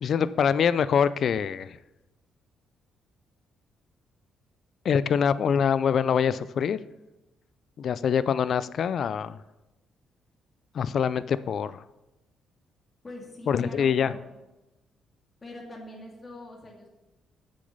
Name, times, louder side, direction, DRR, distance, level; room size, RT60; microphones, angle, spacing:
voice 1, 0.0-1.8 4.8-6.8 7.8-9.4 10.7-11.8 13.5-14.1, left 7 dB, 60° left, 16 dB, 0.3 m, -24 dB
voice 2, 13.0-14.2 15.4-16.9, left 1 dB, 30° left, 0 dB, 2.1 m, -43 dB
7.9 x 6.4 x 5.3 m, 1.0 s
cardioid pair, 90°, 0 cm